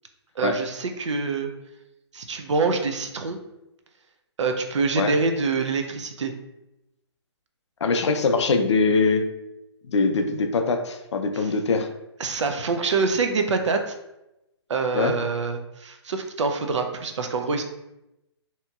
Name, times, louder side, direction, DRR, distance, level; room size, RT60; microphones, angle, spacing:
voice 1, 0.4-1.5 2.1-3.4 4.4-6.3 11.4-11.5 12.2-13.9 14.7-17.6, right 4 dB, 90° right, 5 dB, 0.5 m, -25 dB
voice 2, 7.8-9.3 9.9-11.9 14.9-15.1, left 4 dB, 80° left, 6 dB, 0.4 m, -22 dB
2.8 x 2.8 x 2.3 m, 0.92 s
hypercardioid pair, 155°, 15 cm